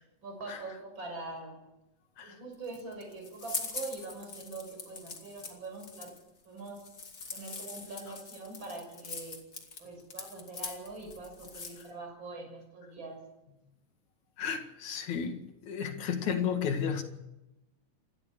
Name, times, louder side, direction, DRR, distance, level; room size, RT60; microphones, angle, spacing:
voice 1, 0.2-1.6 2.2-6.1 6.4-6.8 7.3-9.4 9.8-13.2, right 3 dB, 35° right, 2 dB, 6.6 m, -43 dB
sound 1, 2.5-11.9, left 4 dB, 30° left, 2.6 m, -42 dB
voice 2, 14.4-15.4 15.7-17.0, left 7 dB, 65° left, 6 dB, 3.2 m, -32 dB
27.5 x 13.0 x 8.3 m, 0.94 s
omnidirectional pair, 3.7 m